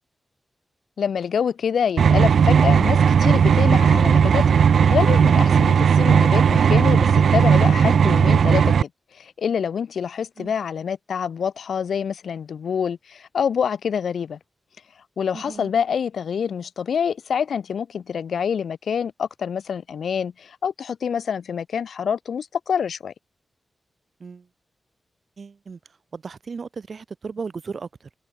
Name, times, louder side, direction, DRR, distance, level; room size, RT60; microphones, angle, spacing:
voice 1, 1.0-4.6 4.9-8.7 9.1-14.4 15.2-23.1, left 7 dB, 90° left, 3.3 m, -26 dB
sound 1, 2.0-8.8, right 7 dB, 85° right, 0.8 m, -16 dB
voice 2, 15.3-15.7 24.2-24.5 25.4-25.8 26.1-28.1, right 5 dB, 55° right, 4.2 m, -35 dB
wide cardioid pair, 125°, 0 cm